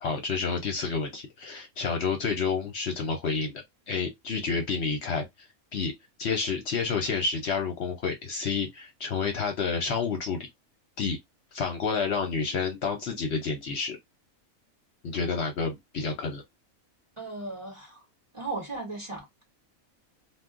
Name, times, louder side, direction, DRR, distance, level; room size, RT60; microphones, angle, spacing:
voice 1, 0.0-5.9 6.2-10.5 11.0-11.2 11.5-14.0 15.0-16.4, left 5 dB, 60° left, 0.9 m, -29 dB
voice 2, 17.2-18.0 18.3-19.4, right 3 dB, 25° right, 1.1 m, -36 dB
2.4 x 2.3 x 3.6 m
omnidirectional pair, 1.4 m